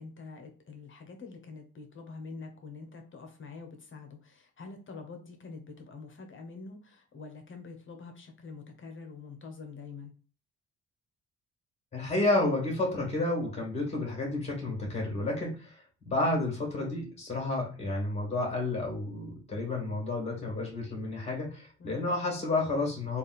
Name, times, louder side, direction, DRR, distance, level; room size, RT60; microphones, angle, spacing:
voice 1, 0.0-10.1 21.8-22.1, left 4 dB, 40° left, 4 dB, 1.0 m, -46 dB
voice 2, 11.9-23.2, left 2 dB, 20° left, -2 dB, 2.0 m, -31 dB
3.5 x 2.5 x 4.1 m, 0.39 s
cardioid pair, 90°, 30 cm